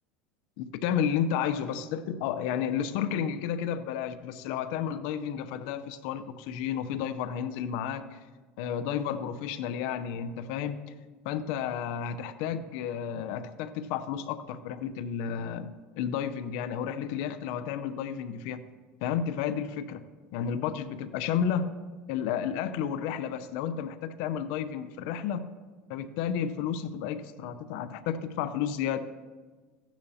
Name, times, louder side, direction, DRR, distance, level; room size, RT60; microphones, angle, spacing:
voice 1, 0.6-8.2 8.6-10.8 11.2-15.7 16.0-18.6 19.0-20.0 20.3-21.6 22.1-25.4 25.9-29.0, left 8 dB, 70° left, 12 dB, 0.7 m, -32 dB
15.0 x 10.0 x 2.8 m, 1.4 s
supercardioid pair, 105°, 6 cm